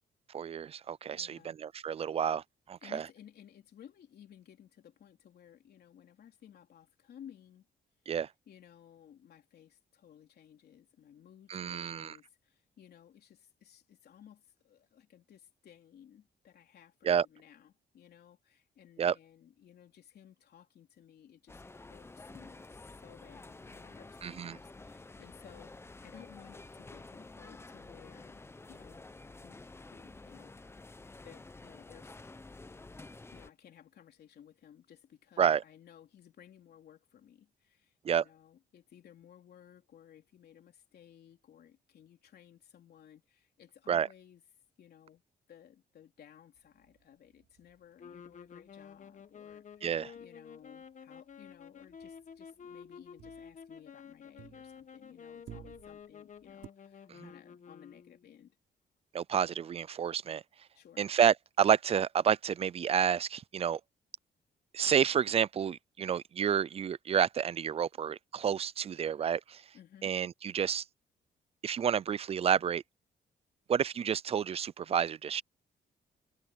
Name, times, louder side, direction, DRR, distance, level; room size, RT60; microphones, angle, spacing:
voice 1, 0.3-3.0 8.1-8.3 11.5-12.2 17.0-17.3 19.0-19.1 24.2-24.6 35.4-35.6 38.0-38.2 43.9-44.1 49.8-50.1 57.2-57.3 59.1-60.4 61.0-63.8 64.7-69.6 70.0-70.8 71.6-72.8 73.7-75.4, right 8 dB, 35° right, 0.4 m, -30 dB
voice 2, 1.1-1.6 2.8-7.7 8.0-8.2 8.5-25.7 26.0-28.4 28.7-29.1 29.4-29.6 29.9-30.5 31.2-32.1 33.3-44.4 44.8-45.2 45.5-58.6 60.7-61.1 69.7-70.1, left 9 dB, 70° left, 3.7 m, -57 dB
sound 1, 21.5-33.5, left 3 dB, 15° left, 0.8 m, -50 dB
sound 2, 46.6-50.3 50.5-50.9 51.2-55.0 55.3-56.7, right 11 dB, 80° right, 5.1 m, -56 dB
sound 3, 48.0-58.4, left 7 dB, 45° left, 1.8 m, -51 dB
cardioid pair, 115°, 17 cm